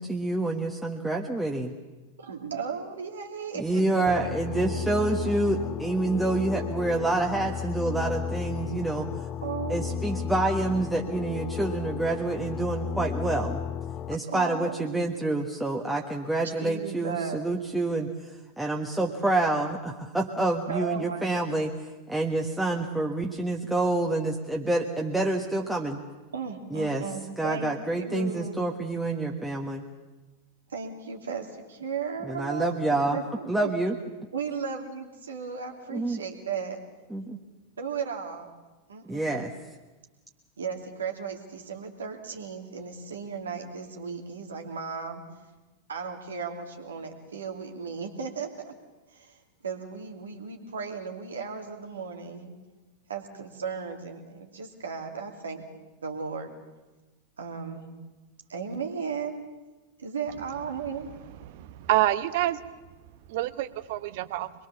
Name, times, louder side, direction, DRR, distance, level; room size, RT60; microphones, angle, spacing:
voice 1, 0.0-1.7 3.5-9.1 9.7-13.6 14.1-21.7 22.1-26.0 26.7-27.0 27.4-29.8 32.2-33.2 33.5-34.0 35.9-36.2 37.1-37.4 39.0-39.5, right 2 dB, 5° right, 0 dB, 1.5 m, -27 dB
voice 2, 2.2-4.7 9.4-9.9 14.1-15.0 16.6-17.5 20.7-21.7 26.3-28.6 30.7-32.7 33.1-33.7 34.3-36.8 37.8-38.6 38.9-39.5 40.6-45.2 45.9-48.7 49.1-52.5 53.1-55.7 56.0-56.5 57.4-57.9 58.5-59.4 60.0-61.1, right 5 dB, 70° right, 3 dB, 2.8 m, -36 dB
sound 1, 4.1-14.2, left 8 dB, 30° left, 0.7 m, -34 dB
voice 3, 61.4-62.6 63.3-64.5, right 14 dB, 50° right, 14 dB, 1.0 m, -27 dB
24.0 x 22.0 x 7.1 m, 1.2 s
figure-of-eight pair, 90°, 0 cm